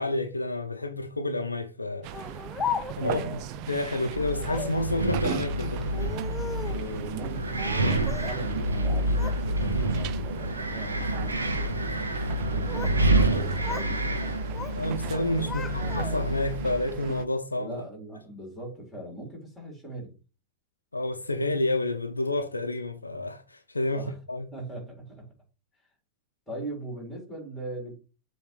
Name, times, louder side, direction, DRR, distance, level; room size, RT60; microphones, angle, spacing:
voice 1, 0.0-2.1 3.0-5.9 14.8-17.8 20.9-24.5, left 2 dB, 80° left, 0.6 m, -29 dB
sound 1, 2.0-17.3, right 11 dB, 40° right, 0.4 m, -39 dB
Speech, 2.1-3.2 4.4-4.8 5.8-6.9 7.6-8.4 8.7-9.4 9.8-10.2 10.9-11.2 12.3-13.0 13.3-13.9 14.2-14.8 15.1-16.4, left 6 dB, 20° left, 0.5 m, -37 dB
voice 2, 3.0-3.7 4.0-4.1 6.6-11.8 12.3-14.4 15.5-16.1 17.6-20.2 23.9-24.2 24.5-25.3 26.5-27.9, right 1 dB, ahead, 4.1 m, -40 dB
Wind, 4.1-16.8, right 1 dB, 80° right, 1.0 m, -28 dB
7.3 x 3.0 x 5.0 m
figure-of-eight pair, 90°, 0 cm